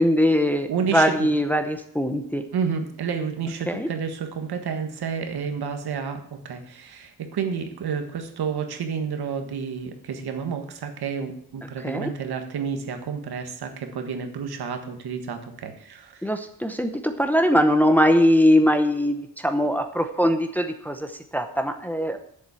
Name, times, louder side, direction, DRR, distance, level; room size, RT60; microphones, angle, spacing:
voice 1, 0.0-2.4 3.7-3.9 11.8-12.1 16.2-22.2, equal, 5° left, 6 dB, 0.7 m, -21 dB
voice 2, 0.7-1.3 2.5-16.2, right 6 dB, 70° right, 6 dB, 1.6 m, -30 dB
7.5 x 7.2 x 8.3 m, 0.67 s
wide cardioid pair, 140°, 39 cm